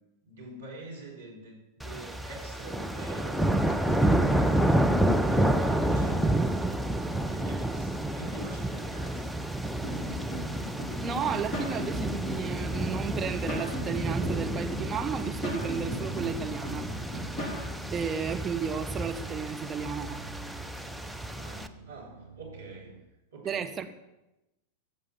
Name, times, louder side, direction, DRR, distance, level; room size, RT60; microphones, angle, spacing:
voice 1, 0.2-4.9 5.2-6.6 7.3-9.4 21.4-23.0 23.3-23.9, right 2 dB, 70° right, 4.0 m, -45 dB
sound 1, 1.8-21.7, right 1 dB, ahead, 0.7 m, -29 dB
sound 2, 9.8-17.6, equal, 20° left, 3.6 m, -38 dB
sound 3, 10.3-23.0, right 6 dB, 85° right, 1.2 m, -49 dB
voice 2, 11.0-16.9 17.9-20.2 23.4-23.9, right 6 dB, 20° right, 1.1 m, -33 dB
16.0 x 6.7 x 7.3 m
figure-of-eight pair, 90°, 0 cm